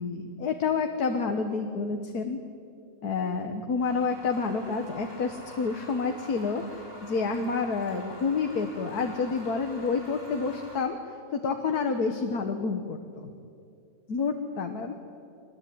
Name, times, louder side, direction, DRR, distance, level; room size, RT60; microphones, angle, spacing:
voice 1, 0.0-2.4 3.0-11.0 11.3-13.3 14.1-14.9, left 4 dB, 85° left, 5 dB, 1.9 m, -29 dB
sound 1, 3.8-10.8, equal, 15° right, 6.1 m, -47 dB
24.5 x 20.5 x 9.6 m, 2.5 s
omnidirectional pair, 1.6 m